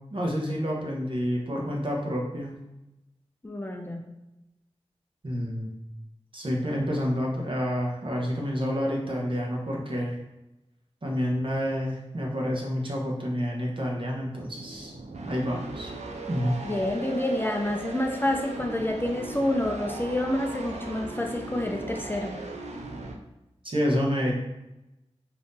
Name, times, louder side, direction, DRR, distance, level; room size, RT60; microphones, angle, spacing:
voice 1, 0.1-2.5 5.2-5.7 6.3-10.2 11.0-14.9 15.3-15.9 16.3-16.5 23.6-24.3, equal, 45° right, -2 dB, 0.8 m, -28 dB
voice 2, 3.4-4.0 16.6-22.4, left 1 dB, 20° left, 1 dB, 0.4 m, -28 dB
sound 1, 14.2-23.2, right 2 dB, 75° right, 0.4 m, -38 dB
2.7 x 2.6 x 3.6 m, 0.95 s
cardioid pair, 50°, 12 cm